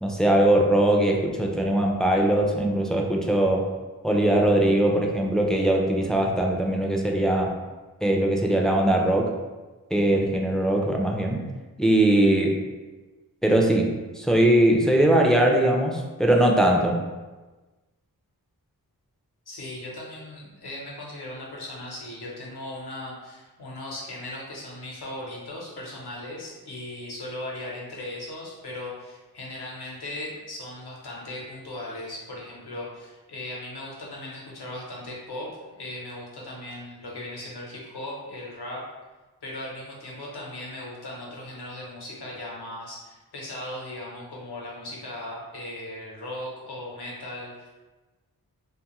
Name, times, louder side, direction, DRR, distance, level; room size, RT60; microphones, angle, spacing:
voice 1, 0.0-3.7 4.0-7.5 8.0-9.4 9.9-11.4 11.8-12.6 13.4-17.0, right 1 dB, ahead, 0 dB, 0.3 m, -21 dB
voice 2, 19.5-38.8 39.4-47.8, left 1 dB, 90° left, -3 dB, 0.8 m, -38 dB
2.6 x 2.3 x 2.9 m, 1.2 s
wide cardioid pair, 60°, 38 cm